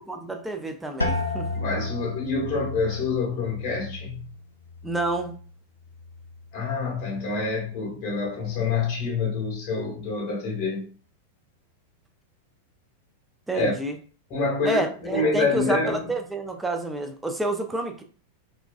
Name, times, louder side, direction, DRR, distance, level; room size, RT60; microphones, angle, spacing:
voice 1, 0.1-1.4 4.8-5.4 13.5-13.9 14.7-18.0, right 1 dB, 5° right, 0.4 m, -29 dB
sound 1, 1.0-6.6 7.0-7.7 8.2-8.6, left 2 dB, 80° left, 0.3 m, -34 dB
voice 2, 1.5-4.2 6.5-10.9 13.5-13.7 14.3-16.1, left 4 dB, 35° left, 0.9 m, -27 dB
2.3 x 2.2 x 2.3 m
figure-of-eight pair, 90°, 0 cm